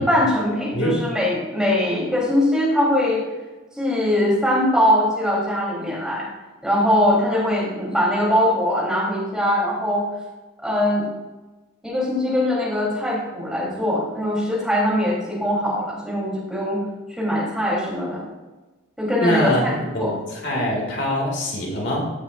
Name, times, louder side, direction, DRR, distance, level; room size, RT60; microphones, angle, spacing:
voice 1, 0.1-3.3 3.8-6.3 6.6-10.1 10.6-11.1 11.8-16.8 17.1-18.2 19.0-20.2 20.5-20.6, left 1 dB, 5° right, -6 dB, 3.7 m, -21 dB
voice 2, 19.2-22.1, equal, 60° left, -1 dB, 2.6 m, -23 dB
15.0 x 8.9 x 2.6 m, 1.1 s
head